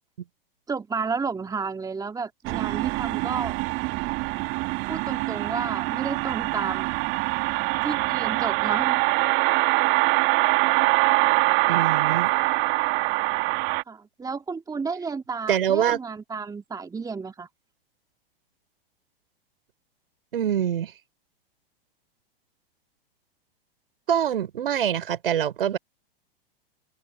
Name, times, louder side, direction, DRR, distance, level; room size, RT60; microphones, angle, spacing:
voice 1, 0.7-3.6 4.9-6.9 7.8-9.0 13.9-17.5, right 5 dB, 10° right, 2.4 m, -32 dB
sound 1, 2.4-13.8, right 24 dB, 40° right, 2.3 m, -24 dB
voice 2, 11.7-12.3 15.5-16.0 20.3-20.9 24.1-25.8, right 9 dB, 70° right, 5.5 m, -24 dB
open air
figure-of-eight pair, 100°, 29 cm